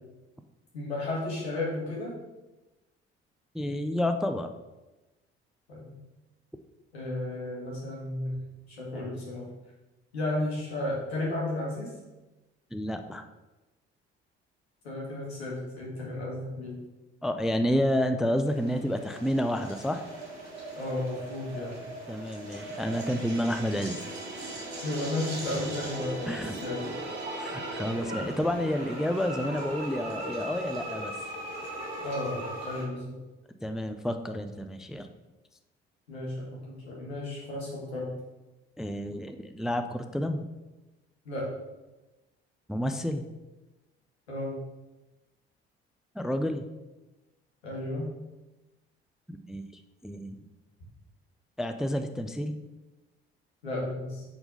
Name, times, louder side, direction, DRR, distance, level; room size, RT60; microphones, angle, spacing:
voice 1, 0.7-2.1 5.7-6.0 6.9-8.4 8.7-9.5 10.1-11.9 14.8-16.8 20.7-21.8 24.8-26.9 32.0-33.2 36.1-38.1 41.2-41.5 44.3-44.6 47.6-48.1 53.6-54.2, left 1 dB, 80° left, -5 dB, 1.7 m, -33 dB
voice 2, 3.5-4.5 12.7-13.3 17.2-20.0 22.1-24.0 26.3-26.5 27.4-31.1 33.6-35.1 38.8-40.5 42.7-43.3 46.2-46.7 49.3-49.7 50.0-50.4 51.6-52.6, equal, ahead, 8 dB, 0.4 m, -30 dB
sound 1, 18.4-32.8, right 1 dB, 85° right, 1.2 m, -39 dB
sound 2, 22.5-27.9, right 2 dB, 35° right, 1.2 m, -42 dB
4.4 x 4.0 x 5.2 m, 1.1 s
figure-of-eight pair, 45°, 31 cm